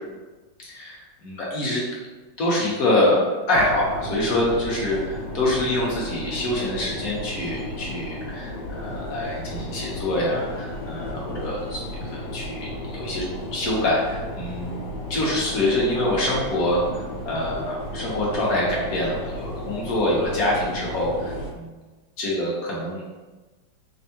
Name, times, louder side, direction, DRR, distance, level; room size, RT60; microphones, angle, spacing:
voice 1, 0.6-1.8 2.4-3.2 3.5-11.8 12.1-13.2 13.5-14.7 15.1-21.8 22.2-23.0, left 1 dB, 55° left, -4 dB, 1.2 m, -25 dB
sound 1, 3.5-21.5, left 1 dB, 75° left, 1.3 m, -34 dB
3.5 x 3.3 x 2.7 m, 1.2 s
omnidirectional pair, 2.2 m